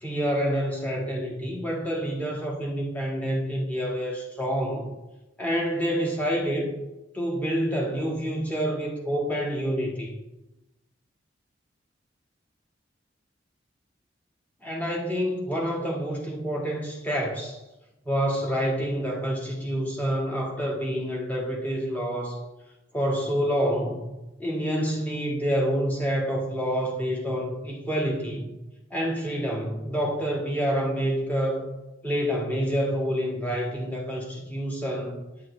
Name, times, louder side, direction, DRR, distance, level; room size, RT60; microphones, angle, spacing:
voice 1, 0.0-4.9 5.4-6.7 7.1-10.2 14.6-17.6 18.0-22.4 22.9-24.1 24.4-28.5 28.9-31.7 32.0-35.2, equal, 10° left, -2 dB, 1.6 m, -27 dB
9.5 x 9.2 x 3.2 m, 1.0 s
head